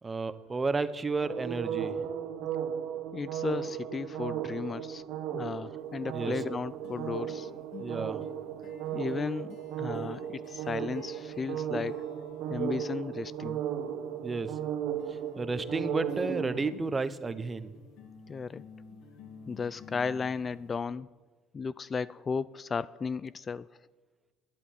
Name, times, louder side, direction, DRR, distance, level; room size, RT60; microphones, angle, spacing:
voice 1, 0.0-2.0 6.1-6.4 7.8-8.2 14.2-14.6 15.1-17.7, right 3 dB, 20° right, 0.9 m, -32 dB
sound 1, 1.2-16.7, right 9 dB, 70° right, 1.5 m, -36 dB
voice 2, 3.1-5.0 5.3-7.5 8.9-12.0 12.5-13.6 18.3-18.7 19.5-21.1 21.5-23.7, left 5 dB, 30° left, 0.3 m, -35 dB
sound 2, 5.8-5.9 6.2-13.5 15.0-20.8, left 5 dB, 65° left, 2.1 m, -53 dB
11.5 x 9.7 x 9.2 m
supercardioid pair, 85°, 0 cm